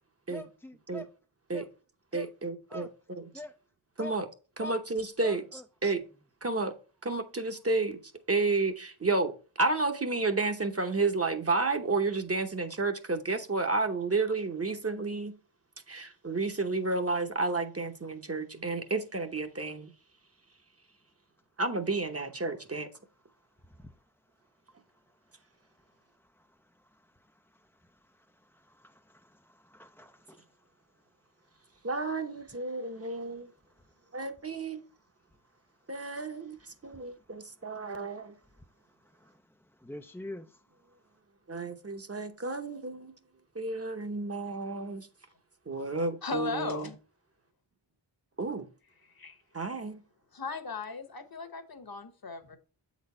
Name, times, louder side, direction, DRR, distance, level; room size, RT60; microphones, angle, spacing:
voice 1, 0.3-1.1 1.5-1.7 2.1-2.3 2.7-2.9 3.3-3.5 4.0-4.1 4.6-4.8 5.2-5.6 23.6-24.0 25.8-25.9 26.2-30.5 33.1-33.2 36.8-37.0 39.0-40.6, left 1 dB, 5° left, 0.3 m, -47 dB
voice 2, 2.1-3.3 4.0-4.3 4.6-6.0 6.4-6.7 7.0-15.3 15.9-19.9 21.6-22.9 31.8-33.5 34.1-34.8 35.9-38.3 41.5-43.1 43.5-45.1 45.7-46.9 48.4-48.7 49.5-50.0, right 3 dB, 30° right, 0.8 m, -31 dB
voice 3, 46.2-47.0 49.1-49.4 50.3-52.6, left 4 dB, 45° left, 1.1 m, -37 dB
7.7 x 4.1 x 4.2 m
wide cardioid pair, 65°, 48 cm